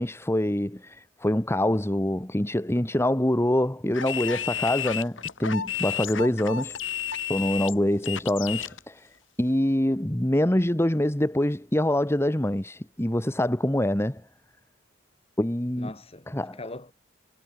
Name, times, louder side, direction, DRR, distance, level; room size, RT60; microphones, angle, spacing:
voice 1, 0.0-6.8 7.3-9.1 9.4-14.2 15.4-15.9 16.3-16.6, left 1 dB, 15° left, 1.4 m, -25 dB
sound 1, 3.9-8.8, left 9 dB, 75° left, 2.9 m, -32 dB
voice 2, 15.8-16.9, left 2 dB, 30° left, 4.1 m, -42 dB
head